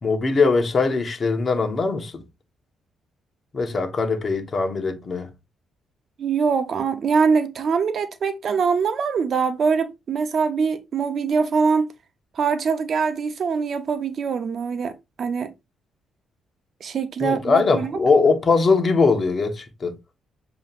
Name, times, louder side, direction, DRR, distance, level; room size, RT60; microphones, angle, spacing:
voice 1, 0.0-2.2 3.5-5.3 17.2-20.0, left 4 dB, 40° left, 1.2 m, -21 dB
voice 2, 6.2-11.9 12.3-15.5 16.8-17.9, right 5 dB, 55° right, 0.7 m, -23 dB
7.1 x 2.9 x 2.5 m
cardioid pair, 90°, 0 cm